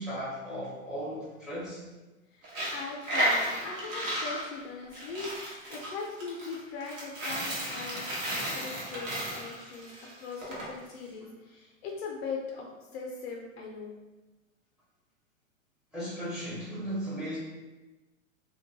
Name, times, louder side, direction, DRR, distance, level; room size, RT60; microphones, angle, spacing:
voice 1, 0.0-1.8 15.9-17.4, equal, ahead, -9 dB, 0.6 m, -36 dB
voice 2, 2.3-9.9 10.2-12.7 12.9-13.9, left 4 dB, 50° left, 0 dB, 0.5 m, -40 dB
Coin (dropping), 2.4-10.7, equal, 65° right, 1.0 m, -33 dB
2.2 x 2.1 x 2.5 m, 1.1 s
hypercardioid pair, 115°, 41 cm